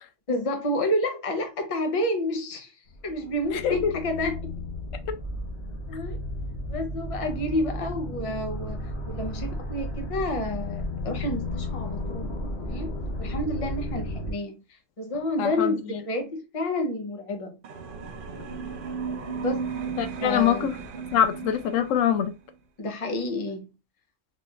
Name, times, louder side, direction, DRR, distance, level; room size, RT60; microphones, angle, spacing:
voice 1, 0.3-2.7 3.0-4.5 5.9-6.2 6.7-12.9 13.2-14.6 15.0-17.6 19.3-19.7 20.2-20.7 22.8-23.7, left 1 dB, 35° left, 0.7 m, -30 dB
sound 1, 2.9-14.3, left 1 dB, 60° left, 1.2 m, -33 dB
voice 2, 3.5-3.9 15.4-16.0 20.0-20.7 21.1-22.3, left 9 dB, 85° left, 1.0 m, -24 dB
sound 2, 17.6-22.3, right 5 dB, 55° right, 0.6 m, -35 dB
4.0 x 2.9 x 2.4 m
omnidirectional pair, 1.3 m